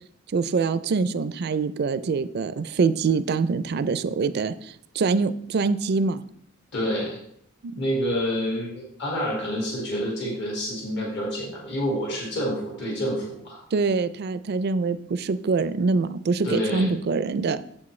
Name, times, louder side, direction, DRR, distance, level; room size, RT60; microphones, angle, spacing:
voice 1, 0.3-6.2 7.6-7.7 13.7-17.6, right 4 dB, 50° right, 14 dB, 0.4 m, -24 dB
voice 2, 6.7-7.2 7.8-13.6 16.4-16.9, equal, 60° left, -2 dB, 2.0 m, -28 dB
8.4 x 7.6 x 3.2 m, 0.69 s
head